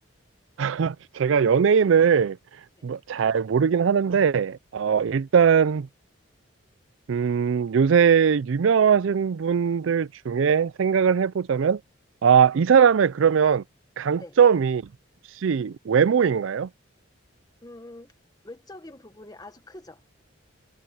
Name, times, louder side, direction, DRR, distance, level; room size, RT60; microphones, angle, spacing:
voice 1, 0.6-2.4 2.8-5.9 7.1-11.8 12.2-13.6 14.0-14.9 15.4-16.7, right 7 dB, 70° right, 0.4 m, -20 dB
voice 2, 17.6-18.1 18.4-20.0, left 1 dB, 20° left, 1.5 m, -44 dB
head